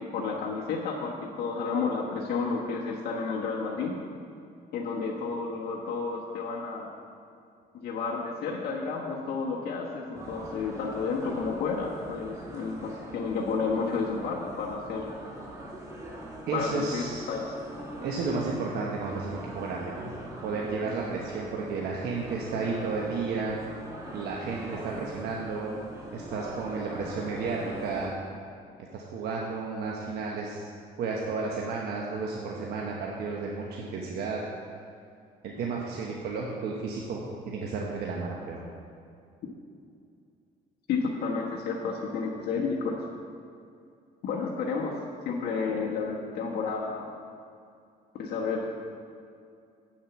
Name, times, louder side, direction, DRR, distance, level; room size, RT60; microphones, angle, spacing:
voice 1, 0.0-4.0 4.7-6.9 7.7-15.1 16.5-17.5 40.9-42.9 44.2-45.0 45.2-47.1 48.1-48.7, left 4 dB, 65° left, -3 dB, 1.3 m, -31 dB
sound 1, 10.1-28.1, right 1 dB, 20° right, 1.9 m, -42 dB
voice 2, 16.5-17.3 18.0-20.1 20.4-23.6 24.1-25.8 26.1-28.1 28.9-30.7 31.0-34.4 35.4-38.6, right 4 dB, 70° right, -2 dB, 1.2 m, -32 dB
8.0 x 7.4 x 5.9 m, 2.4 s
cardioid pair, 110°, 17 cm